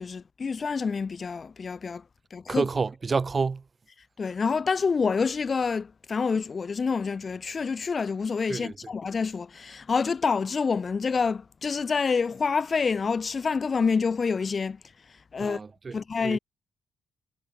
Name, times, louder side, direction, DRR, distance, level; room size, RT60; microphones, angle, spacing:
voice 1, 0.0-2.0 2.3-2.7 4.2-14.8 15.3-15.6 15.9-16.4, left 5 dB, 35° left, 1.0 m, -27 dB
voice 2, 2.5-3.6 8.5-8.7 15.4-16.4, right 4 dB, 30° right, 0.5 m, -29 dB
cardioid pair, 90°, 0 cm